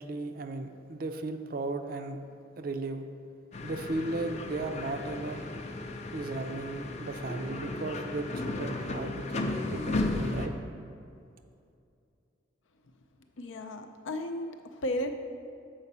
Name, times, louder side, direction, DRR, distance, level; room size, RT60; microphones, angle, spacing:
voice 1, 0.0-2.2 2.6-3.1 3.6-5.5 6.1-10.5, right 2 dB, 50° right, 7 dB, 0.4 m, -35 dB
sound 1, 3.5-10.5, left 2 dB, 35° left, 0.5 m, -35 dB
voice 2, 13.4-15.1, left 1 dB, 85° left, 6 dB, 0.6 m, -34 dB
7.1 x 5.1 x 5.4 m, 2.5 s
head